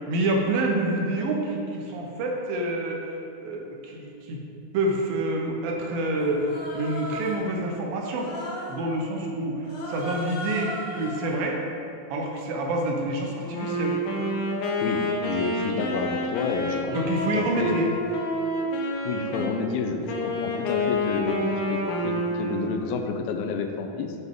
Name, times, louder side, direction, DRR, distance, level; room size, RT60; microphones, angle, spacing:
voice 1, 0.1-3.0 3.4-4.4 4.7-8.3 8.7-11.6 12.1-14.0 16.9-17.9, right 1 dB, 75° right, 0 dB, 2.6 m, -27 dB
Human voice, 6.2-7.5 8.1-8.8 9.6-11.4, equal, 50° left, 1.7 m, -36 dB
Wind instrument woodwind instrument, 13.4-19.6 20.1-22.7, left 1 dB, 70° left, 2.0 m, -28 dB
voice 2, 14.8-16.9 17.4-17.8 19.1-24.2, left 5 dB, 90° left, 5 dB, 2.5 m, -29 dB
8.1 x 8.1 x 3.6 m, 2.7 s
omnidirectional pair, 4.3 m